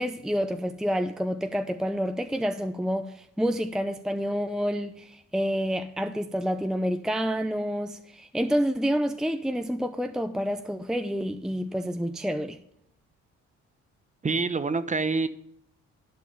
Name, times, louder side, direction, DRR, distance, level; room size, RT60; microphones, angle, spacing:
voice 1, 0.0-12.6, equal, ahead, 0.6 m, -28 dB
voice 2, 14.2-15.3, right 4 dB, 25° right, 0.9 m, -26 dB
11.5 x 5.0 x 7.0 m
cardioid pair, 90°, 30 cm